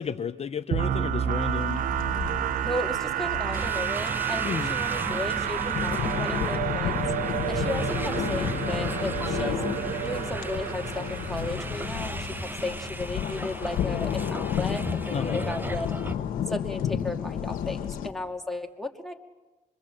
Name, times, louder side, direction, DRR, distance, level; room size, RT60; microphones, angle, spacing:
voice 1, 0.0-1.9 4.4-4.8 15.1-15.6, left 7 dB, 50° left, 9 dB, 0.8 m, -32 dB
sound 1, 0.7-12.5, right 10 dB, 80° right, 0.8 m, -30 dB
sound 2, 1.6-18.1, left 9 dB, 85° left, 1.3 m, -32 dB
voice 2, 2.6-7.0 7.5-9.6 10.0-15.9 16.5-19.1, left 1 dB, ahead, 2 dB, 2.5 m, -35 dB
sound 3, 3.5-16.2, right 1 dB, 15° right, 1.3 m, -36 dB
26.0 x 23.0 x 7.7 m, 1.1 s
cardioid pair, 70°, 14 cm